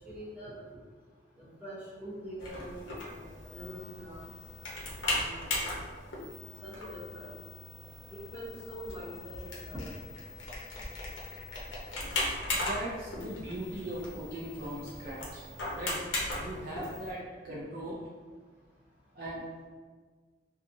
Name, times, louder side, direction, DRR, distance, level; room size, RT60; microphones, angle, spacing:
voice 1, 0.0-0.6 1.6-4.3 5.1-5.5 6.1-7.4 8.1-9.9, equal, 10° right, -8 dB, 0.8 m, -44 dB
sound 1, 2.4-17.1, left 2 dB, 85° left, 0.7 m, -38 dB
voice 2, 12.5-15.4 15.7-16.0 16.4-17.9 19.2-19.7, right 1 dB, 50° right, -6 dB, 0.4 m, -39 dB
2.7 x 2.3 x 2.5 m, 1.5 s
head